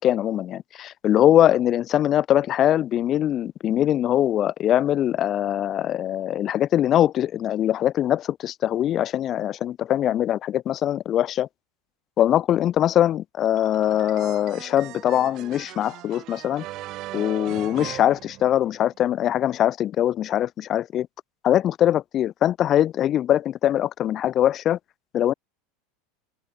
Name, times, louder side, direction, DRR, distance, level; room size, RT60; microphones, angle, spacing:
voice 1, 0.0-11.5 12.2-16.6 17.1-21.1 21.4-24.8 25.1-25.3, left 11 dB, 40° left, 0.9 m, -22 dB
sound 1, 13.6-19.0, right 17 dB, 50° right, 2.2 m, -39 dB
supercardioid pair, 120°, 0 cm